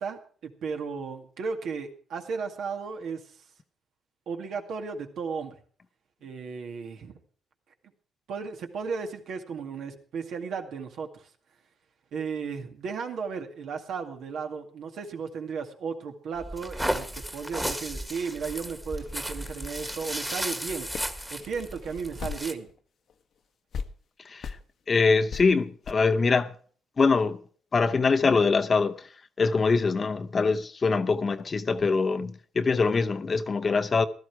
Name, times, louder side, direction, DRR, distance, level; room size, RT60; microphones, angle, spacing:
voice 1, 0.0-3.5 4.3-5.6 6.2-7.2 8.3-11.3 12.1-20.9 21.3-22.7, right 5 dB, 70° right, 2.1 m, -35 dB
sound 1, 16.4-22.5, equal, 5° right, 1.6 m, -34 dB
sound 2, 19.0-22.8 23.1-23.2 23.7-23.9 24.4-24.6 25.3-25.4 25.8-25.9, left 6 dB, 60° left, 1.1 m, -39 dB
voice 2, 24.2-24.6 24.9-26.5 27.0-27.4 27.7-29.1 29.4-34.1, left 4 dB, 35° left, 0.8 m, -23 dB
15.5 x 12.5 x 4.7 m
cardioid pair, 90°, 0 cm